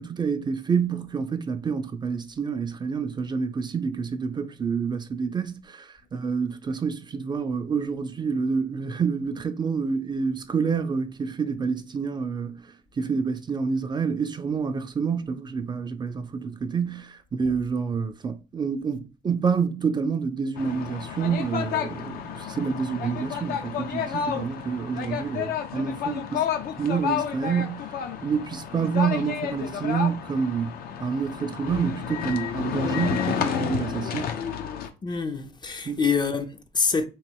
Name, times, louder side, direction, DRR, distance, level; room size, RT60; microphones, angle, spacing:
voice 1, 0.0-12.6 13.0-26.5 26.8-27.9 28.2-34.3 35.9-36.0, right 5 dB, 25° right, 0.4 m, -28 dB
sound 1, 20.6-34.9, left 8 dB, 65° left, 0.6 m, -31 dB
voice 2, 35.0-37.0, left 5 dB, 25° left, 0.5 m, -26 dB
3.1 x 2.9 x 4.5 m
cardioid pair, 110°, 17 cm